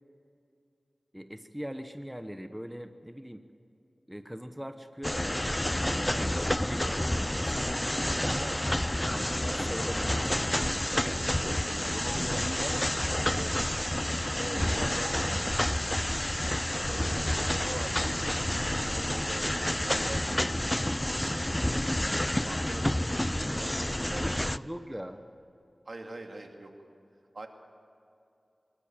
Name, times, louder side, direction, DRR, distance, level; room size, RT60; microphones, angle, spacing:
voice 1, 1.1-3.4 4.1-7.8 8.8-11.4 11.8-12.9 14.3-15.5 22.6-22.8 24.4-25.2, equal, 5° right, 8 dB, 1.1 m, -41 dB
sound 1, 5.0-24.6, left 1 dB, 15° left, 0.4 m, -29 dB
voice 2, 8.3-8.7 9.5-9.6 10.9-12.4 13.3-13.6 14.5-15.1 16.9-20.7 21.0-21.4 22.4-24.5 25.9-26.7 27.3-27.5, right 2 dB, 60° right, 3 dB, 2.5 m, -43 dB
24.0 x 13.5 x 9.0 m, 2.7 s
cardioid pair, 45°, 0 cm